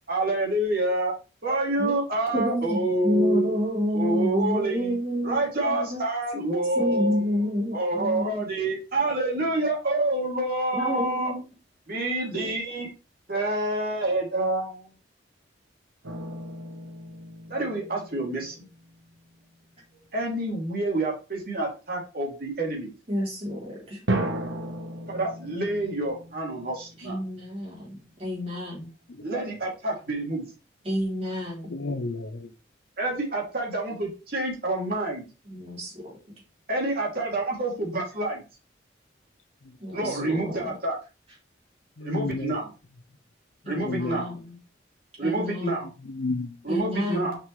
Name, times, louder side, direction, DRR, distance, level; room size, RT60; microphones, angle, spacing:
voice 1, 0.1-1.1 1.4-3.6 3.9-4.9 5.2-7.2 7.7-11.3 11.9-12.9 13.3-14.9 17.5-18.6 20.1-22.9 25.1-27.2 29.2-30.5 33.0-35.2 36.7-38.4 39.9-41.0 42.0-42.7 43.7-44.3 45.2-45.9 46.6-47.4, right 2 dB, 50° right, 2.7 m, -27 dB
voice 2, 2.3-6.0 6.3-6.5 6.7-8.4 10.7-11.4 11.9-12.4 23.1-24.0 27.0-28.9 30.8-31.9 35.4-36.2 39.8-40.7 43.6-44.6 45.2-45.9 46.7-47.4, equal, 30° right, 3.2 m, -29 dB
sound 1, 16.0-19.2 24.1-27.7, right 1 dB, 75° right, 1.1 m, -35 dB
voice 3, 31.7-32.5 42.0-42.5 43.7-44.2 46.1-46.6, left 3 dB, 70° left, 0.6 m, -31 dB
6.1 x 5.4 x 3.2 m
head